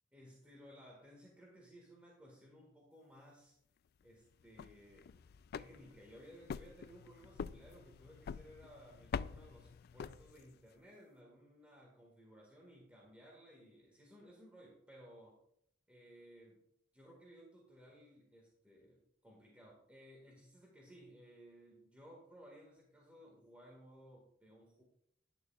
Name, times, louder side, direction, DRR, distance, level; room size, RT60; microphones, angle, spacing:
voice 1, 0.1-3.5 4.0-5.1 5.5-15.4 15.9-16.6 16.9-24.8, equal, 5° right, -2 dB, 1.8 m, -59 dB
sound 1, 4.4-10.7, left 6 dB, 50° left, 0.3 m, -46 dB
11.0 x 11.0 x 2.4 m, 0.71 s
head